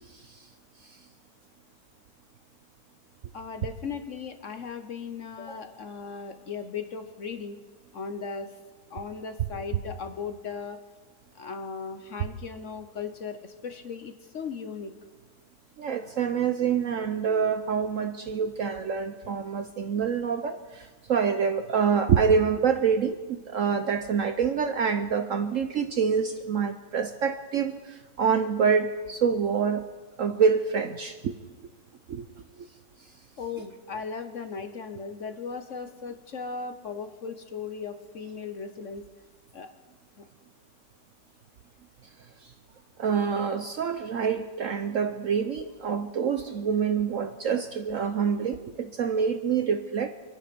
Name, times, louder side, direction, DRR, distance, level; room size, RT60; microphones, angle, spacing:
voice 1, 0.1-0.4 0.8-1.0 15.8-29.9 30.2-31.4 32.1-32.3 32.6-32.7 42.4-42.5 43.0-50.1, right 6 dB, 60° right, 8 dB, 0.9 m, -26 dB
voice 2, 3.3-7.6 7.9-8.5 8.9-10.8 11.3-14.9 33.4-39.0 39.5-39.7 40.2-40.3, left 5 dB, 50° left, 8 dB, 1.1 m, -37 dB
26.0 x 10.0 x 5.3 m, 1.3 s
omnidirectional pair, 1.9 m